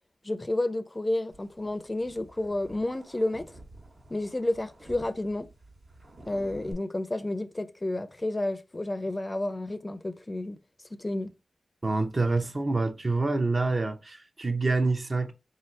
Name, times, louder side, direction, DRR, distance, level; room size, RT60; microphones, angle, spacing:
voice 1, 0.2-3.5 4.1-5.5 6.3-10.6 11.0-11.3, left 1 dB, 25° left, 0.4 m, -31 dB
sound 1, 1.3-6.7, right 1 dB, 70° right, 1.5 m, -51 dB
voice 2, 11.8-15.3, right 3 dB, 45° right, 0.6 m, -27 dB
3.8 x 2.7 x 3.1 m
cardioid pair, 45°, 0 cm